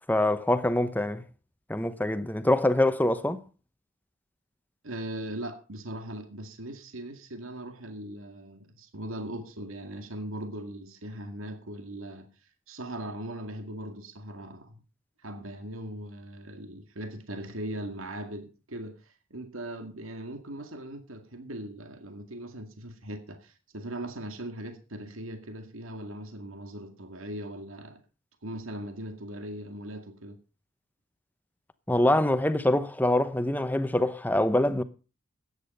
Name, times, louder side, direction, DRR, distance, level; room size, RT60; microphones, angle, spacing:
voice 1, 0.1-1.2 1.7-3.4 31.9-34.8, left 1 dB, 10° left, 0.8 m, -24 dB
voice 2, 4.8-12.3 12.7-14.8 15.2-28.0 28.4-30.4, right 1 dB, 80° right, 2.1 m, -39 dB
13.5 x 9.8 x 5.4 m
head